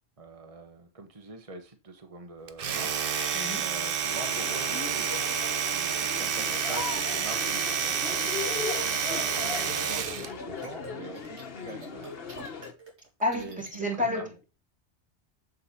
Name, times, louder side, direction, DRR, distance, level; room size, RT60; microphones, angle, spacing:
voice 1, 0.2-2.9 3.5-5.3 5.7-12.1 13.3-14.3, right 3 dB, 30° right, 1.4 m, -44 dB
Domestic sounds home sounds, 2.5-10.3, right 7 dB, 55° right, 1.0 m, -29 dB
sound 1, 4.1-12.7, left 5 dB, 60° left, 1.4 m, -38 dB
sound 2, 8.7-10.3 10.6-10.9 11.2-13.8, right 2 dB, 80° right, 2.7 m, -44 dB
voice 2, 13.2-14.4, left 1 dB, 5° right, 3.1 m, -30 dB
7.7 x 7.7 x 4.4 m
omnidirectional pair, 1.1 m